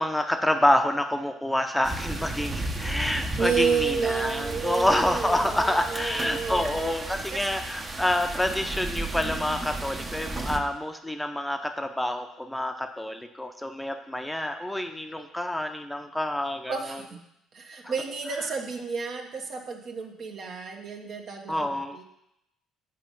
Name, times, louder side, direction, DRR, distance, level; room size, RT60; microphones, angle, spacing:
voice 1, 0.0-17.0 17.8-17.9 21.5-22.0, left 1 dB, 10° left, 6 dB, 0.7 m, -27 dB
sound 1, 1.8-10.6, right 2 dB, 30° right, 1.0 m, -34 dB
voice 2, 3.4-7.4 16.7-17.2 17.5-22.0, right 5 dB, 55° right, 2 dB, 1.3 m, -31 dB
7.5 x 5.1 x 5.4 m, 0.80 s
hypercardioid pair, 50°, 0 cm